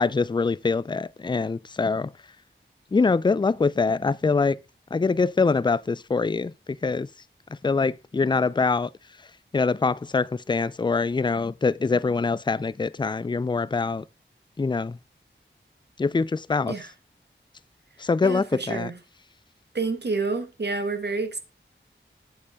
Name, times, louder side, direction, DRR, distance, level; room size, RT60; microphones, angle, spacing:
voice 1, 0.0-2.1 2.9-4.6 4.9-6.5 6.8-7.1 7.6-8.9 9.5-14.0 14.6-15.0 16.0-16.7 18.0-18.9, left 4 dB, 25° left, 0.4 m, -24 dB
voice 2, 18.2-19.0 19.7-21.4, right 3 dB, 55° right, 1.5 m, -29 dB
8.5 x 7.7 x 3.5 m
wide cardioid pair, 70°, 20 cm